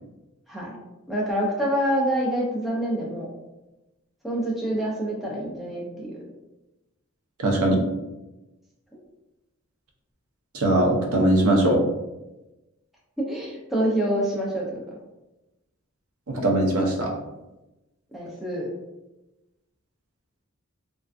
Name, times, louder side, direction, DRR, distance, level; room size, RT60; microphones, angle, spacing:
voice 1, 1.1-3.3 4.2-6.2 13.2-14.8 18.1-18.7, equal, ahead, -5 dB, 0.4 m, -26 dB
voice 2, 7.4-7.8 10.5-11.8 16.3-17.1, right 1 dB, 85° right, 1 dB, 0.5 m, -20 dB
2.5 x 2.2 x 2.4 m, 1.0 s
head